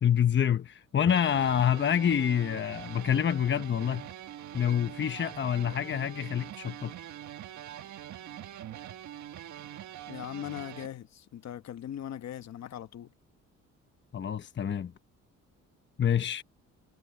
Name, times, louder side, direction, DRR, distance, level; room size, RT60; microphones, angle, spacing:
voice 1, 0.0-4.0 4.5-6.9 14.1-14.9 16.0-16.4, left 9 dB, 40° left, 1.0 m, -27 dB
sound 1, 1.1-10.9, right 11 dB, 70° right, 1.6 m, -44 dB
voice 2, 10.1-13.1, left 10 dB, 60° left, 1.3 m, -40 dB
cardioid pair, 90°, 30 cm